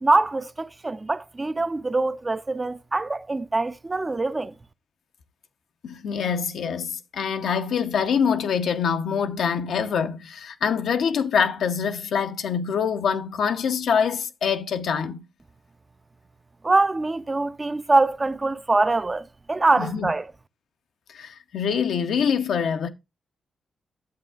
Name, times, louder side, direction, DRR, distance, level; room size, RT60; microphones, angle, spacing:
voice 1, 0.0-4.5 16.6-20.3, right 2 dB, 30° right, 0.4 m, -23 dB
voice 2, 5.8-15.2 19.8-20.1 21.1-22.9, left 7 dB, 80° left, 0.6 m, -25 dB
9.4 x 7.5 x 2.3 m
cardioid pair, 70°, 0 cm